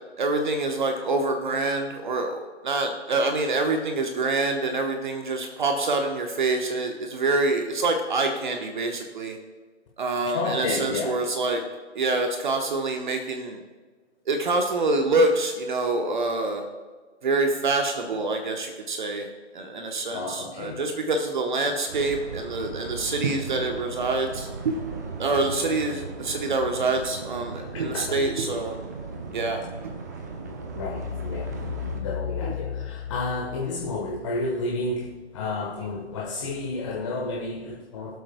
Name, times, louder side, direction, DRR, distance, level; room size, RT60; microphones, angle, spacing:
voice 1, 0.2-9.4 10.0-11.6 11.9-13.6 14.3-16.6 17.2-19.3 19.5-24.7 25.2-28.8 29.3-29.6 32.4-32.5, right 3 dB, 40° right, 4 dB, 1.0 m, -26 dB
voice 2, 10.3-11.2 20.1-20.8 21.6-21.7 27.7-28.0 30.7-38.2, left 3 dB, 25° left, -2 dB, 1.1 m, -30 dB
sound 1, 21.9-32.0, right 4 dB, 15° right, 0.6 m, -37 dB
23.0 x 8.1 x 2.2 m, 1.4 s
figure-of-eight pair, 140°, 36 cm